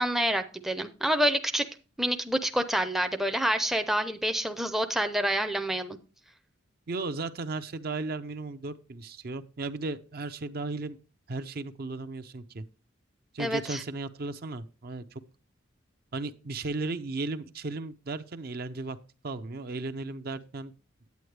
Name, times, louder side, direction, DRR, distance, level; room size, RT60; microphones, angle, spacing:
voice 1, 0.0-1.7 2.0-6.0 13.4-13.8, right 1 dB, ahead, 0.5 m, -27 dB
voice 2, 6.9-11.0 11.3-12.6 13.3-15.2 16.1-19.0 19.2-20.7, right 3 dB, 50° right, 0.6 m, -35 dB
9.3 x 8.6 x 3.3 m
head